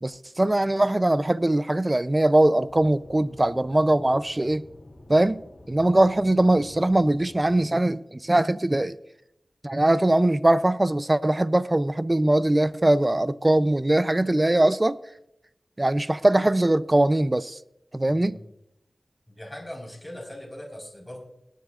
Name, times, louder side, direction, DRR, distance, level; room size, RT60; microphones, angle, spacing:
voice 1, 0.0-4.6 5.1-9.0 9.6-15.0 15.8-17.6 17.9-18.4, right 1 dB, 25° right, 0.5 m, -21 dB
Aircraft / Engine, 2.6-7.6, left 1 dB, 55° left, 2.7 m, -48 dB
voice 2, 18.1-18.5 19.3-21.3, left 1 dB, 10° left, 4.4 m, -40 dB
18.5 x 10.5 x 2.5 m
wide cardioid pair, 55°, 0 cm